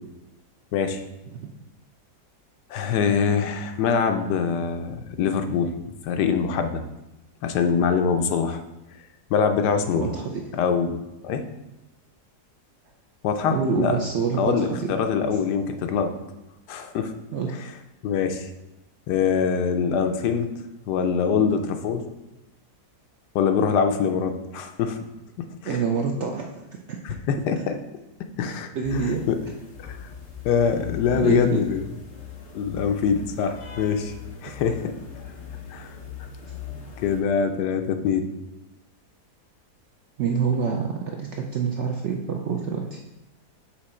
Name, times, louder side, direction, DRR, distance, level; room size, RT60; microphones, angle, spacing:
voice 1, 0.7-1.0 2.7-5.7 6.0-6.8 7.4-8.6 9.3-10.1 10.5-11.0 11.2-11.4 13.2-14.0 14.4-16.1 16.7-17.1 18.0-18.5 19.1-20.5 20.9-22.0 23.3-25.0 25.6-25.8 27.0-27.8 28.4-29.4 29.8-30.0 30.4-31.9 32.5-34.1 34.4-34.9 35.7-35.9 37.0-38.3, left 6 dB, 85° left, 7 dB, 1.2 m, -24 dB
voice 2, 10.0-10.4 13.5-14.7 17.3-17.6 25.7-26.5 26.9-27.0 28.7-29.2 31.2-31.6 40.2-43.0, right 5 dB, 70° right, 1 dB, 0.7 m, -26 dB
sound 1, 28.8-37.2, left 7 dB, 55° left, 1.1 m, -40 dB
6.1 x 3.8 x 4.3 m, 0.97 s
omnidirectional pair, 1.8 m